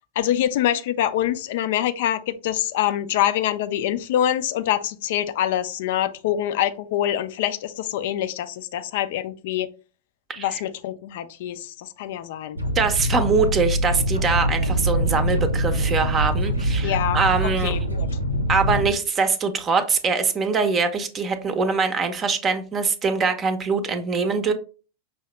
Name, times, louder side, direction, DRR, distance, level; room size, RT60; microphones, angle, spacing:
voice 1, 0.2-9.7 10.4-12.6 16.8-17.2 17.6-18.1, left 11 dB, 55° left, 0.4 m, -25 dB
voice 2, 10.3-10.6 12.7-17.7 18.5-24.5, right 4 dB, 25° right, 0.6 m, -23 dB
sound 1, 12.6-18.9, right 1 dB, 85° right, 0.8 m, -24 dB
5.6 x 2.7 x 3.2 m
figure-of-eight pair, 90°, 0 cm